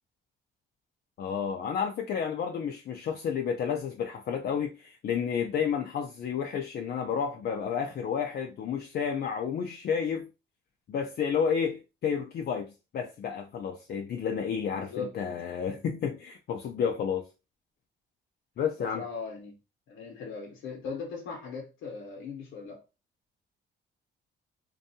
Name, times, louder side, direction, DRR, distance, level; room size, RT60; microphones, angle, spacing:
voice 1, 1.2-10.3 10.9-17.3 18.6-19.0, left 7 dB, 55° left, 0.4 m, -31 dB
voice 2, 14.7-15.1 18.8-19.5 19.9-22.8, left 5 dB, 80° left, 0.8 m, -39 dB
2.6 x 2.3 x 2.7 m
cardioid pair, 90°, 20 cm